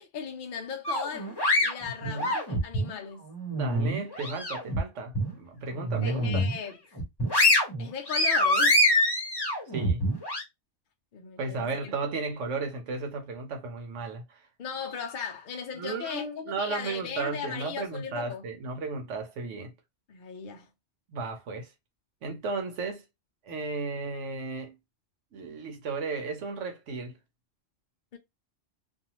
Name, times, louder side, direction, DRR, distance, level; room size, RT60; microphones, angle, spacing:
voice 1, 0.0-3.2 6.0-6.7 7.8-8.8 11.1-11.9 14.6-18.4 20.1-20.7 28.1-28.2, left 7 dB, 55° left, 0.6 m, -37 dB
sound 1, 0.8-2.9 3.3-4.8 5.1-5.3 5.8-6.6 7.0-10.4, left 1 dB, 25° left, 0.8 m, -25 dB
voice 2, 1.9-2.3 3.5-6.5 9.7-10.0 11.4-14.4 15.7-19.7 21.1-21.7 22.2-23.0 23.4-24.8 25.3-27.2, right 3 dB, 90° right, 1.1 m, -34 dB
2.6 x 2.3 x 2.9 m
omnidirectional pair, 1.2 m